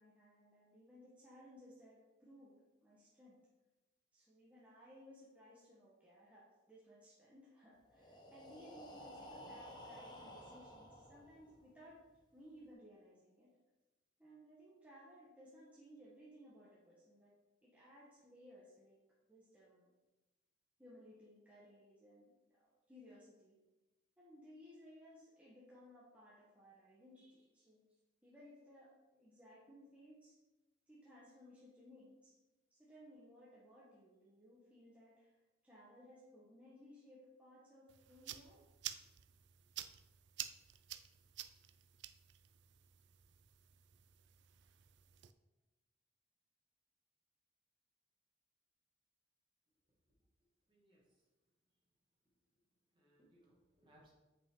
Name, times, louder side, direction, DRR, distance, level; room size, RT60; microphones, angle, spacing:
voice 1, 0.0-3.4 4.1-12.0 12.3-13.5 14.2-17.3 17.6-19.0 19.3-19.9 20.8-23.6 24.2-27.8 28.2-30.3 30.9-32.4 32.7-38.6, equal, 5° right, -7 dB, 1.1 m, -60 dB
Breathing, 7.9-11.7, equal, 20° left, 0.9 m, -54 dB
sound 1, 37.9-45.3, right 12 dB, 60° right, 0.4 m, -51 dB
voice 2, 50.7-51.2 52.9-54.1, right 1 dB, 25° right, -5 dB, 2.0 m, -69 dB
7.8 x 5.3 x 3.7 m, 1.1 s
head